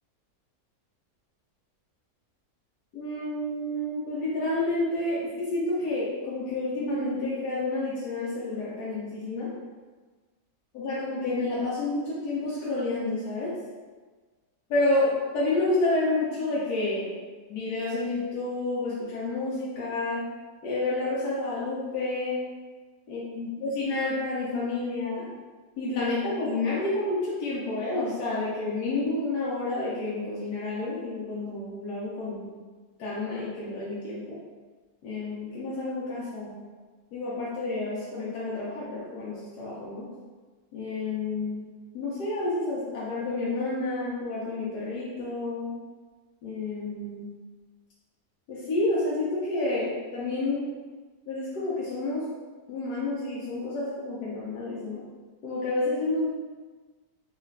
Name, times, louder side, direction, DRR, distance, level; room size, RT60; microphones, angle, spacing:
voice 1, 2.9-9.5 10.7-13.6 14.7-17.2 17.5-20.3 20.6-22.4 23.1-25.3 25.8-32.5 33.0-34.4 35.0-36.6 37.1-40.1 40.7-41.6 41.9-45.7 46.4-47.3 48.5-50.7 51.3-52.3 52.7-55.0 55.4-56.3, left 2 dB, 90° left, -7 dB, 1.3 m, -29 dB
3.3 x 2.4 x 3.1 m, 1.4 s
omnidirectional pair, 1.7 m